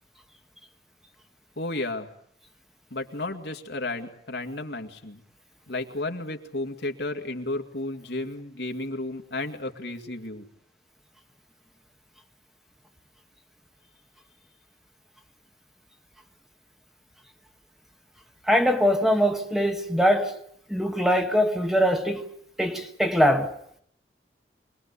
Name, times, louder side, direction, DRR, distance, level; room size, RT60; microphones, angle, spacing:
voice 1, 1.6-2.1 2.9-5.2 5.7-10.5, left 2 dB, 75° left, 2.3 m, -33 dB
voice 2, 18.5-20.4 20.7-22.3 22.6-23.5, equal, ahead, 1.4 m, -22 dB
25.5 x 20.5 x 8.3 m
head